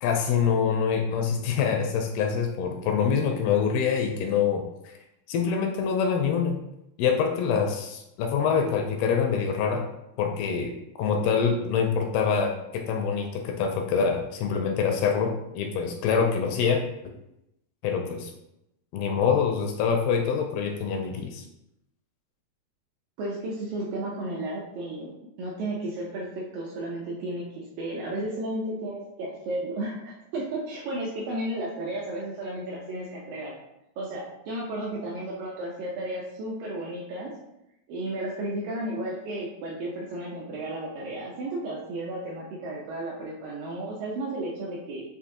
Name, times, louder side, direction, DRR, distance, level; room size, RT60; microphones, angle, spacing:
voice 1, 0.0-4.6 5.3-6.6 7.0-9.9 10.2-16.8 17.8-18.3 18.9-21.4, left 6 dB, 80° left, 3 dB, 2.3 m, -25 dB
voice 2, 23.2-33.5 34.0-37.3 37.9-45.0, right 1 dB, 80° right, -4 dB, 2.0 m, -33 dB
6.4 x 2.7 x 2.6 m, 0.86 s
omnidirectional pair, 4.6 m